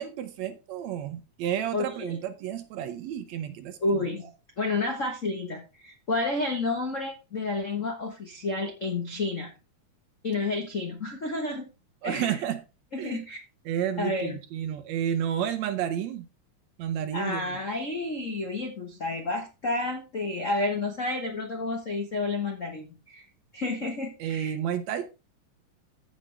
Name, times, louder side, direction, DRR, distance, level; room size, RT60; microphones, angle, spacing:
voice 1, 0.0-4.0 12.0-12.6 13.0-13.2 13.7-16.3 16.8-17.6 24.2-25.1, right 10 dB, 75° right, 1.8 m, -31 dB
voice 2, 1.7-2.2 3.8-4.3 4.6-9.5 10.2-11.6 12.0-12.4 12.9-13.4 14.0-14.4 17.1-23.2 23.5-24.5, left 2 dB, 75° left, 0.7 m, -30 dB
15.0 x 5.2 x 3.3 m
omnidirectional pair, 3.6 m